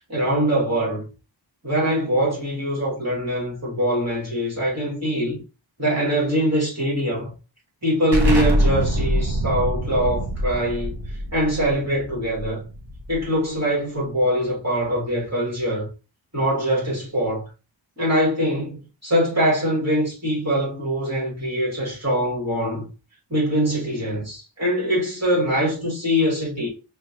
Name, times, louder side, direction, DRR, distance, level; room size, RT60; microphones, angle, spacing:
voice 1, 0.1-1.0 1.6-5.4 5.8-7.3 7.8-11.0 11.3-12.6 13.1-15.9 16.3-17.4 18.0-22.9 23.3-26.7, equal, 35° right, 1.8 m, -23 dB
Explosion, 8.1-13.5, right 1 dB, 60° right, 1.1 m, -24 dB
5.6 x 2.1 x 2.9 m
wide cardioid pair, 65°, 46 cm